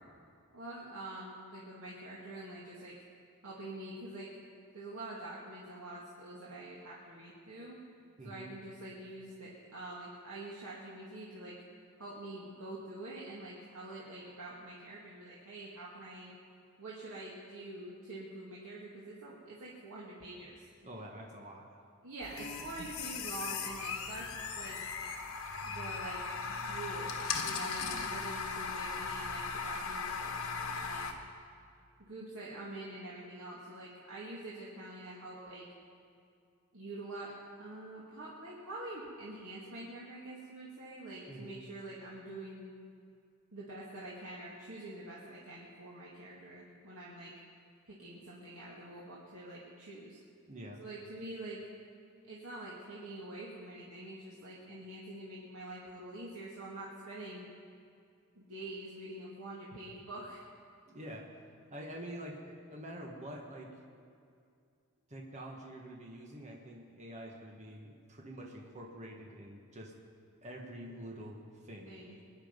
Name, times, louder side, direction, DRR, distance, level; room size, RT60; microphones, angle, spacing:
voice 1, 0.5-2.9 3.4-4.3 4.7-7.8 8.2-11.6 12.0-16.3 16.8-20.7 22.0-24.8 25.6-26.2 26.6-27.2 27.4-31.1 32.1-35.7 36.7-37.3 37.6-42.7 43.5-47.3 47.9-50.2 50.8-51.6 52.3-57.5 58.4-60.4 71.8-72.1, right 2 dB, 85° right, -6 dB, 2.3 m, -46 dB
voice 2, 8.2-8.5 20.8-21.6 41.3-41.6 50.5-50.8 60.9-61.3 61.7-63.7 65.1-69.9 70.4-71.9, right 1 dB, 35° right, -1 dB, 1.6 m, -46 dB
sound 1, 22.2-31.1, left 5 dB, 80° left, 1.4 m, -38 dB
22.5 x 10.5 x 5.3 m, 2.4 s
head